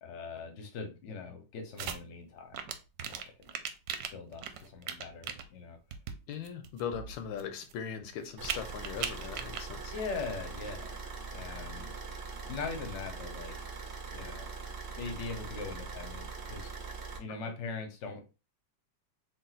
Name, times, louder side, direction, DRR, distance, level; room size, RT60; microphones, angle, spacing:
voice 1, 0.0-2.7 3.0-3.5 4.1-5.8 9.9-10.9 11.3-11.9 12.5-13.6 14.1-14.5 15.0-16.7 17.2-18.2, left 4 dB, 50° left, 4 dB, 0.8 m, -41 dB
sound 1, 1.8-2.0 2.5-5.4 5.9-6.1 6.4-7.7 8.2-9.6 9.9-10.1, right 9 dB, 75° right, 1.2 m, -38 dB
voice 2, 6.3-9.9, left 7 dB, 80° left, 7 dB, 1.4 m, -39 dB
Car / Idling, 8.4-17.2, right 4 dB, 55° right, 0.7 m, -42 dB
3.8 x 2.3 x 3.9 m, 0.30 s
omnidirectional pair, 2.1 m